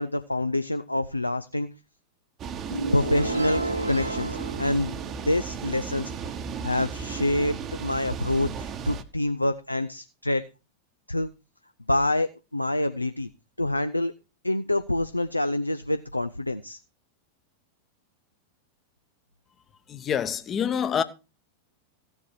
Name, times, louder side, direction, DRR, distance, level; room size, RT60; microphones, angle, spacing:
voice 1, 0.0-1.7 2.9-4.9 5.3-6.3 6.6-10.4 11.1-11.3 11.9-13.3 13.6-14.1 14.4-16.8, left 1 dB, 85° left, 0.5 m, -26 dB
sound 1, 2.4-9.0, right 6 dB, 30° right, 1.0 m, -35 dB
sound 2, 2.7-5.5, right 2 dB, 85° right, 0.8 m, -31 dB
voice 2, 19.9-21.0, left 8 dB, 25° left, 0.9 m, -26 dB
15.0 x 7.1 x 4.6 m
figure-of-eight pair, 90°, 0 cm